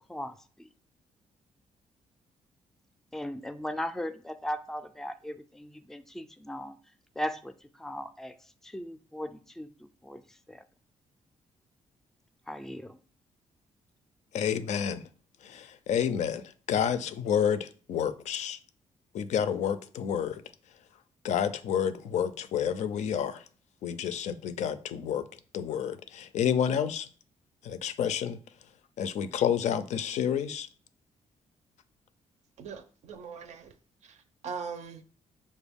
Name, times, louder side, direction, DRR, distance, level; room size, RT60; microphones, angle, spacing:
voice 1, 0.1-0.7 3.1-6.8 7.2-10.6 12.5-13.0, left 1 dB, 5° left, 0.3 m, -38 dB
voice 2, 14.3-15.0 15.4-18.6 19.1-20.4 21.2-23.4 23.8-25.3 25.5-27.1 27.6-28.4 29.0-30.7, left 8 dB, 70° left, 0.4 m, -29 dB
voice 3, 32.6-33.7 34.0-35.0, right 6 dB, 70° right, 0.5 m, -41 dB
6.0 x 2.2 x 3.4 m
cardioid pair, 100°, 12 cm